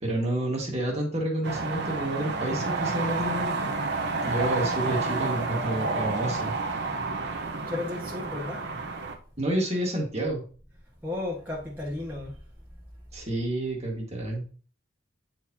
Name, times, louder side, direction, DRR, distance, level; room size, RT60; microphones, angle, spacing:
voice 1, 0.0-3.7 4.2-6.5 9.4-10.4 13.1-14.4, right 1 dB, 35° right, 1.7 m, -29 dB
sound 1, 1.4-9.2, right 3 dB, 55° right, 1.0 m, -30 dB
voice 2, 7.7-8.7 11.0-12.4, left 2 dB, 10° right, 1.3 m, -33 dB
9.1 x 4.5 x 2.8 m
head